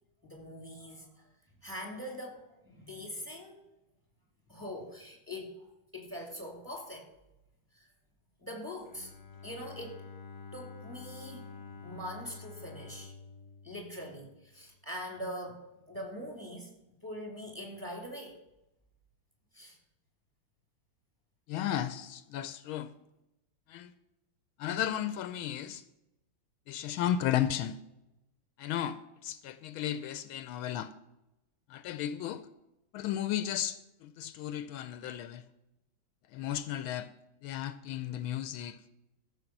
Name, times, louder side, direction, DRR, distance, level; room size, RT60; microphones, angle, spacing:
voice 1, 0.2-1.1 1.6-3.6 4.5-5.5 5.9-7.1 7.8-7.9 8.4-9.1 9.4-10.0 10.5-11.4 11.8-13.1 13.6-16.7 17.0-18.4 19.5-19.8, equal, 10° right, 2.5 m, -42 dB
Bowed string instrument, 8.9-14.8, left 4 dB, 30° left, 1.1 m, -49 dB
voice 2, 21.5-22.9 23.7-23.9 24.6-25.8 26.7-27.8 28.6-30.9 31.7-32.4 32.9-35.4 36.3-37.1 37.4-38.8, left 11 dB, 80° left, 1.4 m, -34 dB
14.0 x 6.6 x 5.9 m
omnidirectional pair, 2.3 m